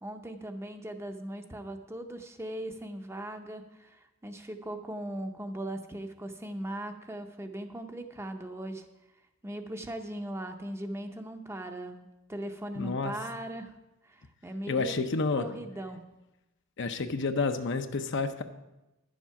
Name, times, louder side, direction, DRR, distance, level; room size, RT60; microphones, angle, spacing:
voice 1, 0.0-8.8 9.4-13.7 14.0-15.1 15.4-16.0, right 1 dB, 15° right, 6 dB, 0.7 m, -39 dB
voice 2, 12.8-13.1 14.7-15.5 16.8-18.4, left 4 dB, 60° left, 8 dB, 0.7 m, -29 dB
10.5 x 7.3 x 5.7 m, 0.98 s
head